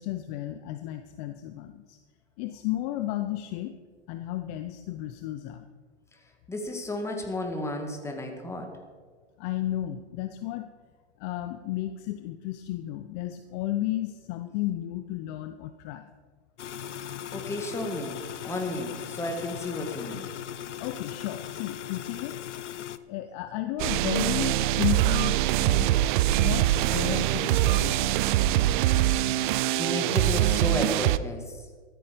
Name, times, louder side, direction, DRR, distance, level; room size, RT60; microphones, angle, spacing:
voice 1, 0.0-2.0 2.4-3.8 4.1-5.6 9.4-10.7 11.2-16.1 20.8-22.4 23.1-26.0 26.4-28.2, left 14 dB, 35° left, 10 dB, 0.7 m, -33 dB
voice 2, 6.5-8.7 17.3-20.3 29.8-31.5, left 1 dB, 10° left, 4 dB, 2.0 m, -33 dB
sound 1, 16.6-23.0, left 10 dB, 85° left, 0.8 m, -38 dB
sound 2, 23.8-31.2, right 14 dB, 45° right, 0.6 m, -23 dB
13.5 x 13.5 x 5.2 m, 1.5 s
hypercardioid pair, 125°, 35 cm